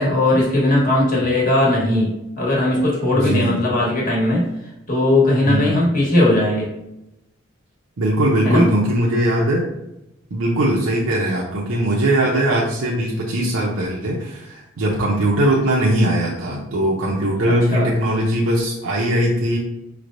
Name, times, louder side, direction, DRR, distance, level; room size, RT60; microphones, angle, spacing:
voice 1, 0.0-4.5 4.9-6.7 8.4-8.7 10.8-10.9 17.4-17.9, left 1 dB, 40° left, -4 dB, 1.3 m, -18 dB
voice 2, 3.1-3.6 5.4-5.8 8.0-9.6 10.3-19.6, right 1 dB, 85° right, -4 dB, 0.6 m, -20 dB
5.0 x 3.2 x 2.5 m, 0.89 s
head